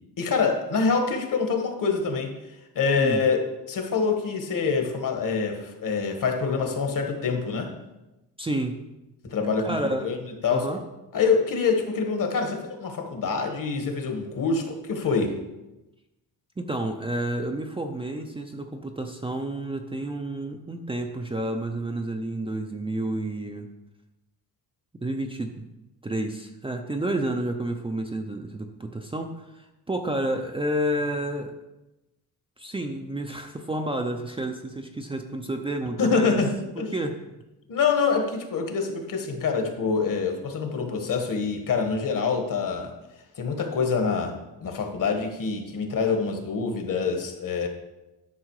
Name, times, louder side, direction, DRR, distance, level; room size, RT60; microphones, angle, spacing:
voice 1, 0.2-2.4 2.7-7.7 9.2-10.2 10.4-10.7 11.1-15.3 36.0-36.9 37.7-42.9 43.4-44.3 44.6-47.7, left 5 dB, 55° left, 4 dB, 1.6 m, -25 dB
voice 2, 8.4-8.8 9.6-10.1 10.5-10.8 16.6-23.7 25.0-25.6 26.0-31.5 32.6-36.4 36.8-37.2, right 1 dB, 15° right, 3 dB, 0.6 m, -30 dB
11.5 x 6.3 x 4.8 m, 1.0 s
wide cardioid pair, 155°, 39 cm